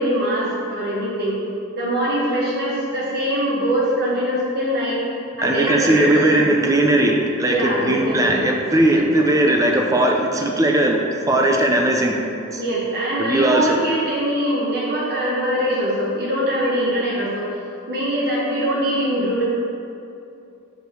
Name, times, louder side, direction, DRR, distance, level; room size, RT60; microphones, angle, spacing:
voice 1, 0.0-1.4 1.8-5.0 5.4-6.5 7.5-8.4 12.5-17.5 17.9-19.4, equal, 50° right, -5 dB, 1.2 m, -22 dB
voice 2, 5.4-11.0 11.3-12.2 12.5-12.6 13.2-13.8, right 1 dB, 15° right, 1 dB, 0.6 m, -18 dB
5.2 x 4.8 x 6.1 m, 2.6 s
head